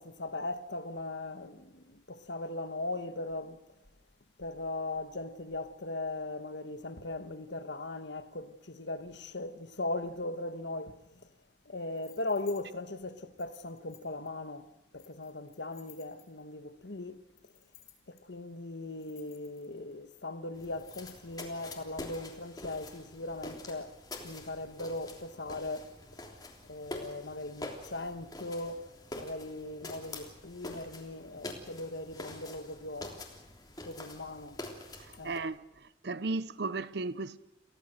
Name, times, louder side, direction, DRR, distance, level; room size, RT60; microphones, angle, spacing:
voice 1, 0.0-3.6 4.4-11.3 11.6-14.7 14.9-17.2 18.1-24.0 24.2-25.9 26.7-33.1 33.8-34.6 35.2-35.4, left 2 dB, 75° left, 1.4 m, -39 dB
sound 1, 11.9-12.6 13.4-14.3 15.0-16.5 17.4-18.2 18.8-19.9 20.6-21.4, left 13 dB, 55° left, 5.1 m, -58 dB
sound 2, 20.5-35.4, left 2 dB, 20° left, 3.3 m, -46 dB
voice 2, 35.0-37.4, right 3 dB, 65° right, 0.7 m, -36 dB
29.5 x 16.5 x 6.6 m
head